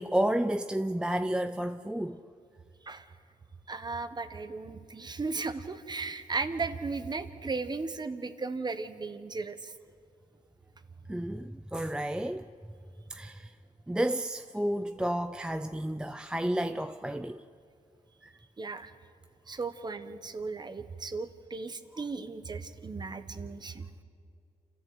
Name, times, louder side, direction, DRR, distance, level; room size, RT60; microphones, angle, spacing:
voice 1, 0.0-2.2 11.1-12.5 13.1-13.5 13.9-17.4 18.2-18.3, right 1 dB, 5° right, 0.5 m, -31 dB
voice 2, 3.7-9.7 18.6-18.9 19.5-23.9, right 4 dB, 30° right, 1.3 m, -36 dB
28.5 x 13.5 x 8.2 m
cardioid pair, 90°, 14 cm